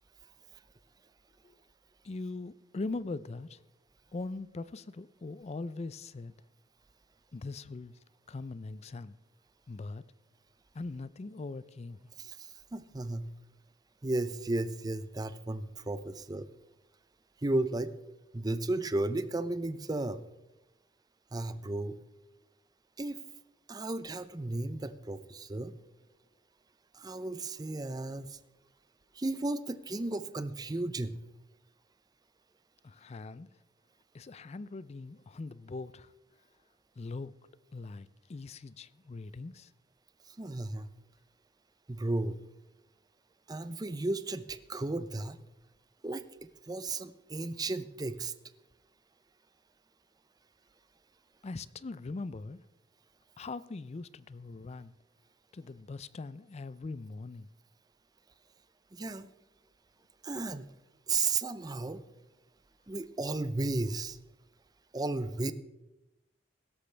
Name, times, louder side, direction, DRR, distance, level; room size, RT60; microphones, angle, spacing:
voice 1, 2.0-3.6 4.1-6.3 7.3-7.9 8.3-9.1 9.7-10.0 10.7-12.0 32.8-33.5 34.1-36.1 37.0-37.3 37.7-39.7 51.4-52.6 53.4-54.9 55.5-57.5, left 3 dB, 35° left, 0.4 m, -41 dB
voice 2, 12.2-13.3 14.0-16.5 17.4-17.9 18.3-20.2 21.3-22.0 23.0-23.2 23.7-25.7 26.9-28.4 29.1-31.2 40.3-40.9 41.9-42.4 43.5-45.4 46.0-48.3 58.9-59.3 60.2-60.7 61.1-62.0 62.9-64.2 64.9-65.5, right 2 dB, 20° right, 0.6 m, -34 dB
16.5 x 13.0 x 3.4 m
head